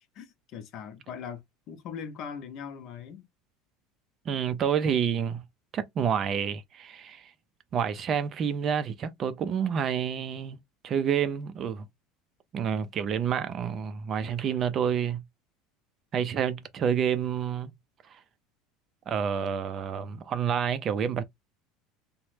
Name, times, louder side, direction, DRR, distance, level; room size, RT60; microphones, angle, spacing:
voice 1, 0.2-1.4 1.7-3.2, left 7 dB, 45° left, 0.6 m, -40 dB
voice 2, 4.3-5.4 5.7-7.3 7.7-10.6 10.8-11.8 12.5-15.2 16.1-17.7 19.1-21.2, right 8 dB, 30° right, 0.4 m, -28 dB
2.9 x 2.1 x 3.2 m
cardioid pair, 150°, 0 cm